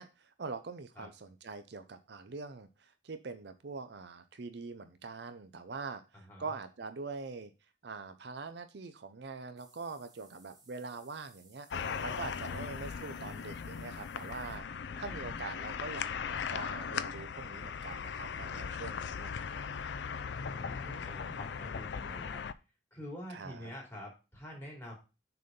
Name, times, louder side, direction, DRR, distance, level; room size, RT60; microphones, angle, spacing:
voice 1, 0.0-7.5 7.8-11.7 12.0-14.6 15.0-19.8 20.8-21.5 23.3-23.7, right 4 dB, 60° right, 10 dB, 0.6 m, -44 dB
voice 2, 6.1-6.5 12.5-12.6 14.9-15.2 20.2-22.4 22.9-24.9, equal, 15° left, -3 dB, 2.9 m, -47 dB
sound 1, 9.6-14.6, right 4 dB, 20° right, 1.2 m, -63 dB
sound 2, 11.7-22.5, left 6 dB, 65° left, 0.4 m, -38 dB
6.6 x 4.1 x 5.2 m, 0.29 s
head